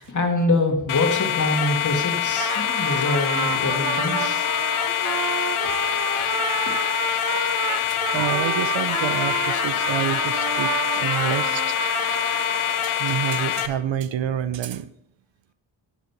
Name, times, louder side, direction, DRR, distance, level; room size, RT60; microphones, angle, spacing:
voice 1, 0.0-4.5, left 2 dB, 35° left, 3 dB, 1.9 m, -24 dB
sound 1, 0.9-13.7, left 10 dB, 85° left, 0.7 m, -25 dB
Trumpet, 2.2-13.1, right 5 dB, 40° right, 1.1 m, -29 dB
voice 2, 7.9-11.8 12.8-14.9, right 10 dB, 65° right, 14 dB, 0.6 m, -28 dB
11.0 x 4.1 x 5.8 m, 0.80 s
cardioid pair, 45°, 49 cm